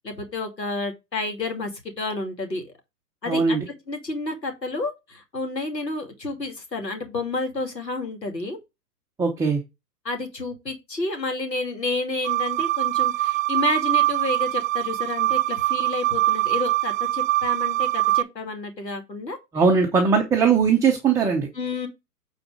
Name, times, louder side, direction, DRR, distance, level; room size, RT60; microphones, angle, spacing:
voice 1, 0.0-1.7 2.0-2.7 3.2-3.6 3.9-8.6 10.0-19.4 21.5-21.9, left 3 dB, 90° left, 2.7 m, -30 dB
voice 2, 3.3-3.7 9.2-9.6 19.5-21.5, right 5 dB, 5° right, 0.8 m, -20 dB
sound 1, 12.2-18.2, right 16 dB, 55° right, 0.6 m, -23 dB
8.9 x 4.2 x 4.8 m
figure-of-eight pair, 120°, 48 cm